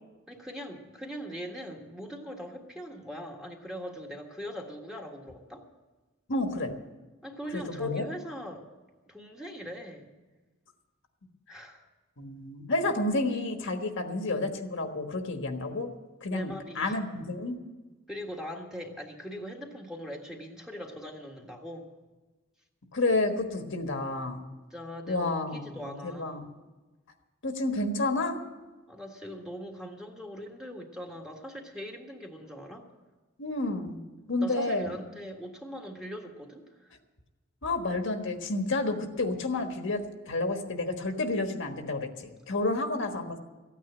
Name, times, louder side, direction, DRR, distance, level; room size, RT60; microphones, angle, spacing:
voice 1, 0.3-5.7 7.2-8.7 9.1-10.1 11.5-11.8 16.3-17.0 18.1-21.8 24.7-26.5 28.9-32.8 34.4-36.9, equal, 5° right, 1 dB, 1.6 m, -41 dB
voice 2, 6.3-6.7 7.5-8.0 12.2-15.9 16.2-17.6 22.9-24.5 25.1-26.5 27.4-28.4 33.4-34.0 34.3-35.0 37.6-43.4, left 2 dB, 65° left, 5 dB, 1.4 m, -30 dB
14.5 x 9.3 x 8.8 m, 1.2 s
head